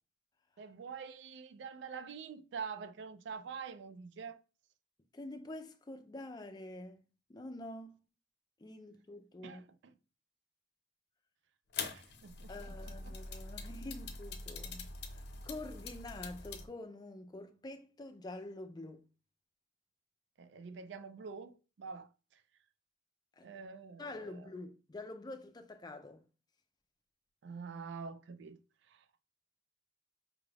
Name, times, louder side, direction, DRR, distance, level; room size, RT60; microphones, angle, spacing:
voice 1, 0.6-4.4 9.4-9.9 11.8-13.2 20.4-22.4 23.4-24.5 27.4-28.6 28.9-29.0, right 5 dB, 70° right, 0.4 m, -46 dB
voice 2, 5.1-7.0 7.3-8.0 8.6-9.6 12.5-19.0 23.4-23.5 24.0-26.2, left 2 dB, 20° left, 0.4 m, -47 dB
sound 1, 11.7-16.7, left 4 dB, 65° left, 0.6 m, -44 dB
5.0 x 2.3 x 3.2 m
head